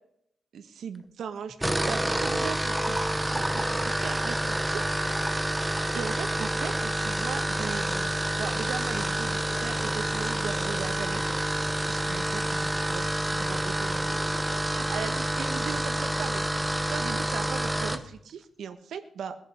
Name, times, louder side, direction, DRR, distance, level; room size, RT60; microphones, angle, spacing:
voice 1, 0.5-5.0 5.9-11.2 11.9-19.4, right 7 dB, 85° right, 9 dB, 1.3 m, -38 dB
sound 1, 1.5-18.1, right 1 dB, 10° right, 1.0 m, -28 dB
20.0 x 11.0 x 5.2 m, 0.74 s
wide cardioid pair, 125°, 0 cm